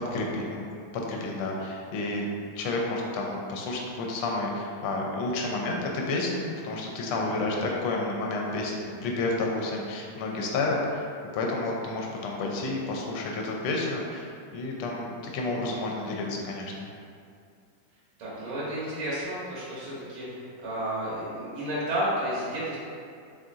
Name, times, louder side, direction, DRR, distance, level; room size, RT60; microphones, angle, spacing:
voice 1, 0.1-0.7 0.9-2.2 2.6-11.0 11.3-15.0 15.3-16.9, left 2 dB, 80° left, -1 dB, 1.5 m, -30 dB
voice 2, 18.2-22.8, right 1 dB, 75° right, -8 dB, 1.8 m, -32 dB
4.2 x 3.8 x 2.4 m, 2.3 s
omnidirectional pair, 2.4 m